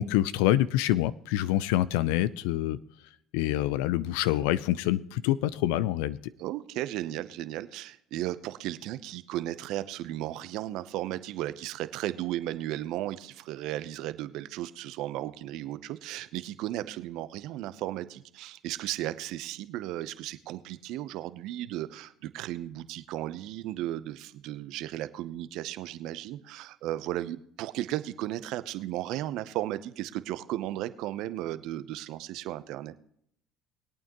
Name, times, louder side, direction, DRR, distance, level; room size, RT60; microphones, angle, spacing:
voice 1, 0.0-2.8 3.3-6.2, left 14 dB, 75° left, 17 dB, 0.5 m, -26 dB
voice 2, 6.4-32.9, right 14 dB, 65° right, 13 dB, 0.7 m, -35 dB
21.5 x 8.8 x 3.0 m, 0.69 s
hypercardioid pair, 75°, 0 cm